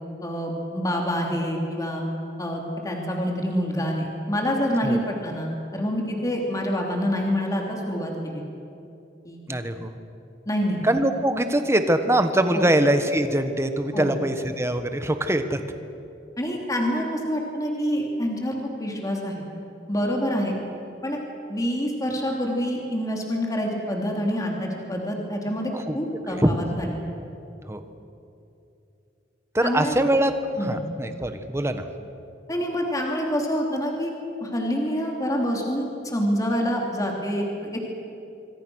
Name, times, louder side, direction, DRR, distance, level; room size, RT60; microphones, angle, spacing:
voice 1, 0.2-2.0 2.4-8.4 9.2-9.4 10.4-10.8 12.5-12.7 13.9-14.1 16.4-19.4 19.9-20.6 21.0-21.2 21.5-26.9 29.6-30.0 30.6-30.8 32.5-34.1 34.4-37.9, equal, 20° left, 0 dB, 3.4 m, -27 dB
voice 2, 9.5-9.9 10.8-15.6 25.7-26.0 26.3-26.5 27.7-27.8 29.5-30.3 30.7-31.8, right 1 dB, 15° right, 8 dB, 1.4 m, -23 dB
26.0 x 24.5 x 6.4 m, 2.8 s
head